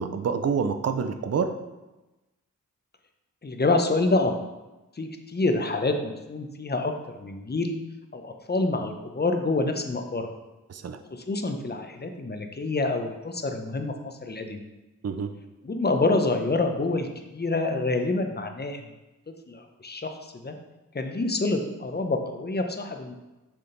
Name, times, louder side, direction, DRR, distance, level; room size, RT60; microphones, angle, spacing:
voice 1, 0.0-1.5 10.7-11.0 15.0-15.3, right 6 dB, 50° right, 8 dB, 0.5 m, -27 dB
voice 2, 3.4-4.3 5.0-7.8 8.1-10.3 11.1-14.6 15.6-18.8 19.3-20.2 20.4-20.6 20.9-23.1, left 2 dB, 30° left, 5 dB, 0.7 m, -27 dB
6.8 x 3.6 x 3.8 m, 1.1 s
cardioid pair, 55°, 32 cm